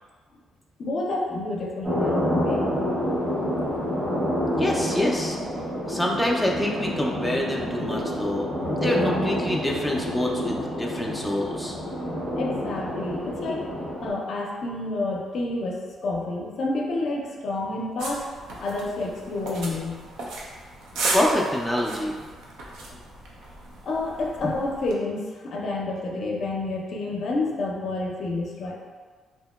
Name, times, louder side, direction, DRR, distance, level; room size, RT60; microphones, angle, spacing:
voice 1, 0.8-2.7 4.9-5.0 12.3-13.7 14.0-18.3 18.6-20.0 23.8-28.7, left 2 dB, 60° left, -2 dB, 0.5 m, -29 dB
sound 1, 1.8-14.1, equal, 55° right, 1.1 m, -28 dB
voice 2, 4.6-5.4 5.9-11.7 21.1-22.1, left 1 dB, ahead, -2 dB, 0.4 m, -26 dB
sound 2, 18.0-24.9, right 2 dB, 85° right, 0.5 m, -35 dB
2.8 x 2.7 x 2.2 m, 1.5 s
cardioid pair, 90°, 0 cm